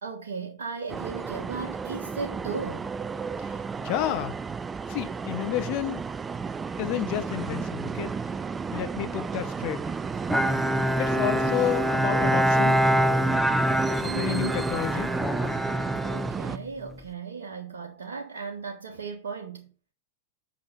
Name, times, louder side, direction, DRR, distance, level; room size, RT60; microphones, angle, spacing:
voice 1, 0.0-2.9 14.0-14.7 16.0-19.7, right 5 dB, 65° right, 1.4 m, -36 dB
sound 1, 0.9-16.6, right 5 dB, 15° right, 0.4 m, -33 dB
voice 2, 3.4-4.4 4.9-6.0 6.8-8.1 8.7-9.8 11.0-12.8 14.0-15.1, left 13 dB, 45° left, 1.0 m, -30 dB
Bowed string instrument, 10.3-17.0, equal, ahead, 0.9 m, -25 dB
8.4 x 6.3 x 5.0 m
figure-of-eight pair, 90°, 0 cm